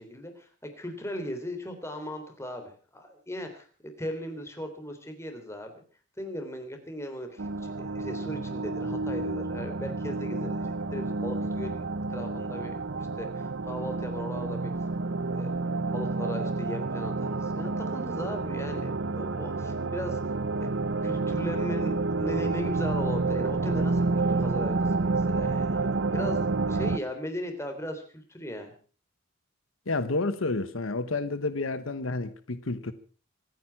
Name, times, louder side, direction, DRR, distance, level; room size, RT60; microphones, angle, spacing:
voice 1, 0.0-5.7 6.2-12.8 13.2-14.7 15.3-15.5 15.8-20.4 20.6-20.7 21.0-28.7, equal, 15° left, 3.4 m, -38 dB
sound 1, 7.4-27.0, right 3 dB, 60° right, 0.8 m, -29 dB
voice 2, 29.9-32.9, left 3 dB, 80° left, 1.1 m, -30 dB
25.5 x 9.4 x 5.8 m
head